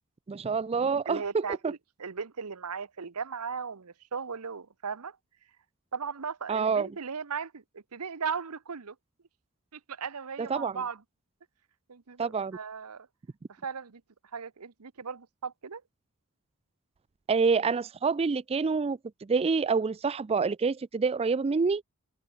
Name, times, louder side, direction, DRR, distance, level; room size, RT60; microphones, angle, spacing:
voice 1, 0.3-1.7 6.5-6.9 10.4-10.8 12.2-12.6 17.3-21.8, right 5 dB, 25° right, 0.4 m, -27 dB
voice 2, 1.1-5.2 5.9-9.0 9.7-11.0 11.9-13.1 13.5-14.0 14.3-15.8, right 6 dB, 85° right, 0.9 m, -37 dB
head